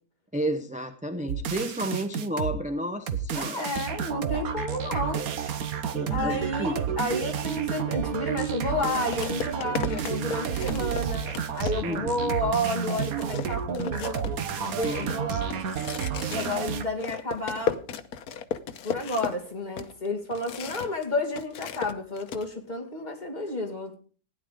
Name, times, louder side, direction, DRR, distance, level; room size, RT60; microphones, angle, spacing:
voice 1, 0.3-3.7 5.9-6.7 11.8-12.3 14.8-15.1, right 1 dB, 5° right, 6 dB, 0.8 m, -31 dB
sound 1, 1.3-2.6 3.1-16.8, right 8 dB, 75° right, 1.4 m, -31 dB
voice 2, 3.3-5.2 6.1-11.3 11.5-14.2 14.6-15.6 16.3-17.8 18.8-24.0, left 1 dB, 30° left, 1 dB, 2.5 m, -31 dB
sound 2, 8.1-8.3 9.1-12.1 12.5-12.6 12.9-21.0 21.3-22.5, left 7 dB, 80° left, 1.4 m, -36 dB
16.0 x 10.0 x 5.1 m, 0.41 s
omnidirectional pair, 1.6 m